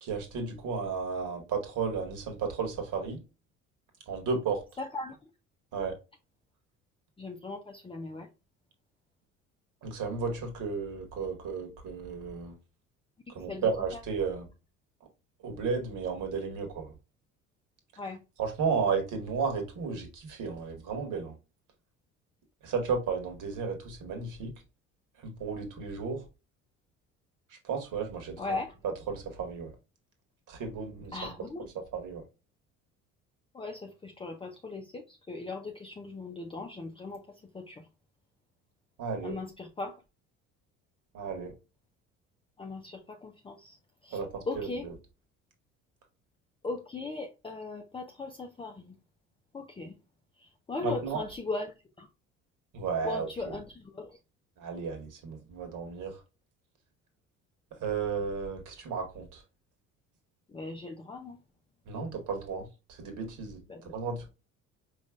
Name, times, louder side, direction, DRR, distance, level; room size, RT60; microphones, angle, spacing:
voice 1, 0.0-3.2 4.1-4.6 5.7-5.9 9.8-12.5 13.4-14.5 15.4-16.9 18.4-21.3 22.6-24.5 25.2-26.2 27.6-28.6 28.8-29.7 30.5-31.2 31.9-32.2 39.0-39.3 41.1-41.5 44.1-44.7 50.8-51.2 52.7-53.5 54.6-56.2 57.8-59.4 61.9-64.3, right 5 dB, 50° right, 1.8 m, -33 dB
voice 2, 4.8-5.2 7.2-8.3 13.5-14.0 18.0-18.2 28.4-28.7 31.1-31.6 33.5-37.9 39.2-40.0 42.6-43.8 44.0-44.9 46.6-49.0 49.5-49.9 50.4-52.1 53.0-54.2 60.5-61.4 63.7-63.9, left 3 dB, 15° left, 0.6 m, -38 dB
5.1 x 3.2 x 2.4 m
figure-of-eight pair, 55°, 39 cm